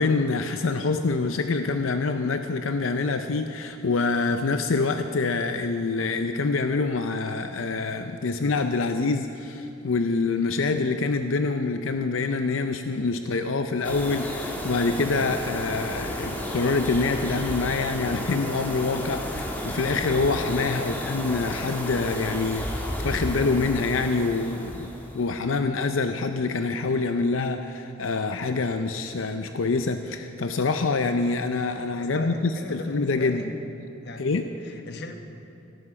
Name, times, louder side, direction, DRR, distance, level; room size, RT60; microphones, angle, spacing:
voice 1, 0.0-24.9 25.1-33.4 34.2-34.5, left 3 dB, 90° left, 7 dB, 0.6 m, -26 dB
sound 1, 13.8-25.4, equal, 10° left, 1.4 m, -32 dB
voice 2, 32.0-33.5 34.0-34.2 34.6-35.1, left 2 dB, 55° left, 6 dB, 1.1 m, -38 dB
16.5 x 13.5 x 4.8 m, 2.8 s
head